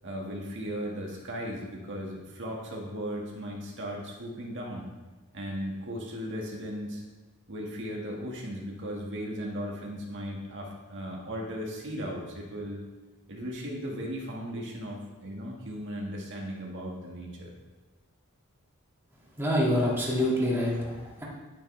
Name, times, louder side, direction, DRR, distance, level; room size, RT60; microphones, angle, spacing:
voice 1, 0.0-4.9 5.3-7.0 7.5-12.8 13.3-17.5, equal, 55° right, -2 dB, 1.7 m, -37 dB
voice 2, 19.4-21.2, equal, 10° right, -5 dB, 1.9 m, -26 dB
10.5 x 9.1 x 3.3 m, 1.2 s
head